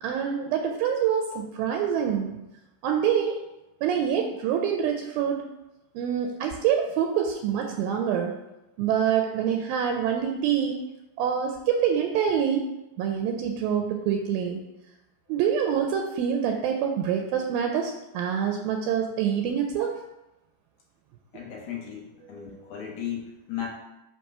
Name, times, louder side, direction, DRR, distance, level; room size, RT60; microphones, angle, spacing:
voice 1, 0.0-2.3 2.8-3.4 3.8-5.5 6.0-8.3 8.8-10.8 11.2-12.7 13.0-14.6 15.3-20.0 22.3-22.5, right 8 dB, 80° right, 3 dB, 2.2 m, -26 dB
voice 2, 21.3-23.7, left 9 dB, 65° left, -2 dB, 2.2 m, -36 dB
5.9 x 3.0 x 5.4 m, 0.96 s
omnidirectional pair, 4.3 m